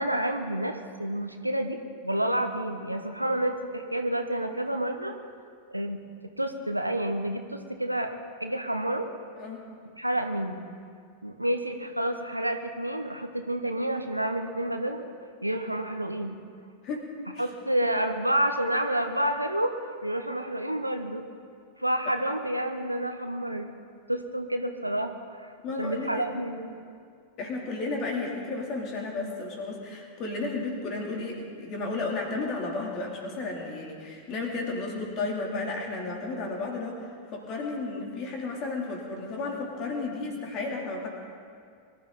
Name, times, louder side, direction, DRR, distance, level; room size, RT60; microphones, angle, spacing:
voice 1, 0.0-5.1 5.7-6.0 6.4-9.1 10.0-10.7 11.2-15.1 15.4-16.4 17.4-19.7 20.0-21.2 21.8-23.7 24.1-25.5 25.8-26.8, right 1 dB, 85° right, 6 dB, 1.1 m, -29 dB
voice 2, 25.6-26.3 27.4-41.1, left 3 dB, 35° left, -1 dB, 3.5 m, -33 dB
23.5 x 12.5 x 4.2 m, 2.2 s
figure-of-eight pair, 90°, 0 cm